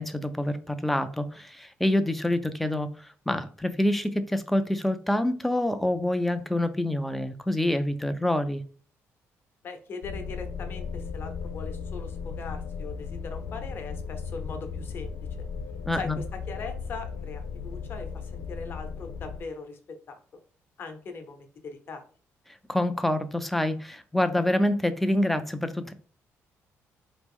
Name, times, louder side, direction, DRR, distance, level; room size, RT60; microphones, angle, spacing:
voice 1, 0.0-8.6 15.9-16.2 22.7-25.9, left 1 dB, 5° left, 0.3 m, -26 dB
voice 2, 9.6-15.1 16.0-16.1 16.5-20.2 20.8-22.0, left 4 dB, 45° left, 0.8 m, -40 dB
sound 1, 10.0-19.4, left 5 dB, 75° left, 0.4 m, -36 dB
4.0 x 3.0 x 3.5 m
cardioid pair, 145°, 5 cm